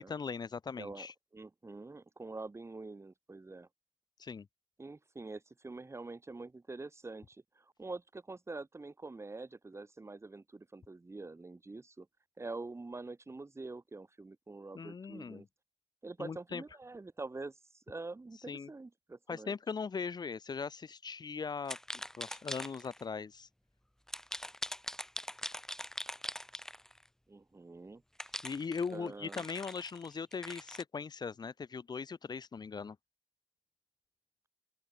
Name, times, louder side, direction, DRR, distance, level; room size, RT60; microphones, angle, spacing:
voice 1, 0.0-1.1 4.2-4.5 14.8-15.5 16.2-16.6 18.5-18.7 19.3-21.8 22.2-23.5 28.4-33.0, left 5 dB, 55° left, 3.5 m, -39 dB
voice 2, 0.8-1.1 1.3-3.7 4.8-12.1 12.4-15.5 16.0-19.5 27.3-28.0 28.9-29.5, right 3 dB, 35° right, 5.2 m, -45 dB
sound 1, 21.7-23.0 24.1-27.1 28.2-30.8, equal, 5° left, 2.2 m, -42 dB
open air
supercardioid pair, 45°, 8 cm